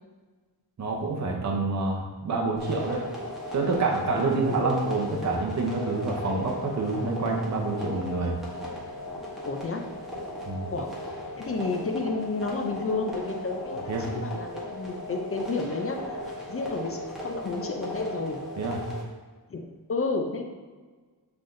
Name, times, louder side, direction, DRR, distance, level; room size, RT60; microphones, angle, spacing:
voice 1, 0.8-3.0 3.5-8.4 10.5-10.7 13.9-14.1 18.6-18.8, right 3 dB, 45° right, 0 dB, 0.7 m, -27 dB
sound 1, 2.6-19.0, left 1 dB, ahead, 1.0 m, -37 dB
voice 2, 9.5-9.8 10.7-10.9 11.4-18.4 19.5-19.6 19.9-20.4, left 3 dB, 35° left, 3 dB, 0.4 m, -31 dB
5.6 x 3.4 x 2.6 m, 1.4 s
wide cardioid pair, 140°, 39 cm